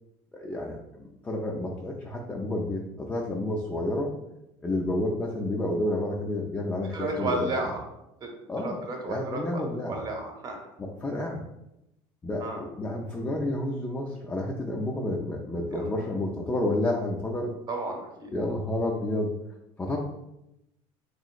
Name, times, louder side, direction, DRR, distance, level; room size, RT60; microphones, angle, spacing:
voice 1, 0.3-4.1 4.6-7.5 8.5-8.8 9.1-10.0 10.8-11.4 12.2-17.5 18.3-19.3 19.8-20.0, left 1 dB, 15° left, -2 dB, 0.3 m, -30 dB
voice 2, 6.9-7.8 8.2-10.6 12.4-12.6 15.7-15.9 17.7-18.3, right 2 dB, 35° right, 2 dB, 0.8 m, -33 dB
3.0 x 2.8 x 2.4 m, 0.86 s
supercardioid pair, 125°, 12 cm